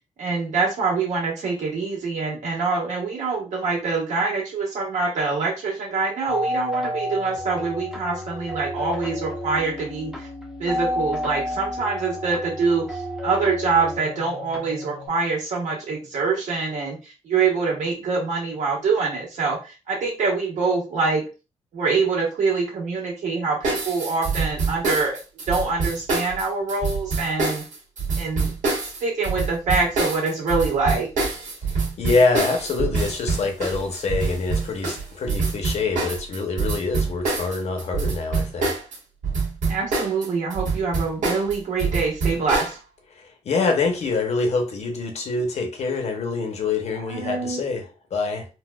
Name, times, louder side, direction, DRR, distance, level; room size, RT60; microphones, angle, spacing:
voice 1, 0.2-10.3 10.6-21.2 21.7-27.6 28.2-28.5 28.8-31.1 39.7-42.8 47.1-47.6, right 4 dB, 75° right, 1.4 m, -25 dB
sound 1, 6.3-15.1, left 1 dB, 5° right, 0.6 m, -31 dB
sound 2, 23.6-39.0 39.2-42.7, right 4 dB, 90° right, 1.3 m, -25 dB
voice 2, 31.6-38.7 43.2-48.5, left 3 dB, 60° left, 0.8 m, -25 dB
4.0 x 2.2 x 2.3 m
wide cardioid pair, 130°, 13 cm